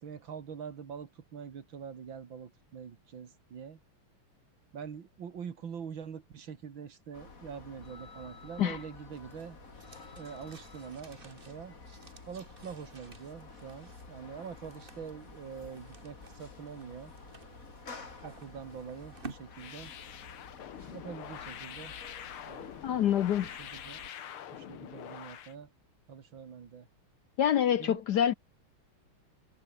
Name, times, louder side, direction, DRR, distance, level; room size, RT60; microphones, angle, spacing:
voice 1, 0.0-3.8 4.7-9.6 10.2-11.7 12.3-17.1 18.2-19.9 20.9-21.9 22.5-22.8 23.6-24.1 24.5-25.7 26.1-26.9 27.8-28.0, right 7 dB, 65° right, 2.6 m, -44 dB
sound 1, 7.1-24.1, left 4 dB, 40° left, 3.1 m, -51 dB
sound 2, 9.1-19.3, right 4 dB, 25° right, 1.9 m, -53 dB
sound 3, 19.5-25.6, left 9 dB, 85° left, 2.3 m, -45 dB
voice 2, 22.8-23.5 27.4-28.3, left 10 dB, 60° left, 1.2 m, -26 dB
omnidirectional pair, 2.3 m